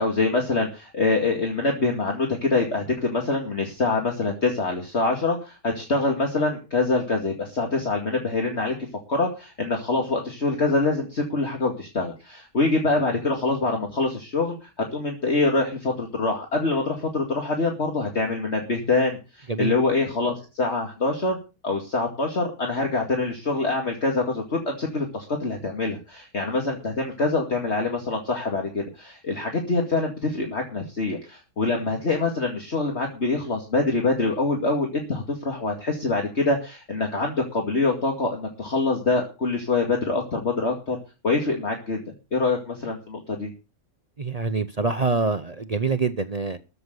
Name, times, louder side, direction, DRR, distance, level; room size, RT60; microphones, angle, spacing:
voice 1, 0.0-8.7 9.1-21.4 21.6-41.0 41.2-42.0 42.3-43.5, left 3 dB, 45° left, 2.5 m, -25 dB
voice 2, 44.2-46.6, right 4 dB, 35° right, 0.6 m, -25 dB
13.5 x 6.8 x 8.0 m
omnidirectional pair, 1.6 m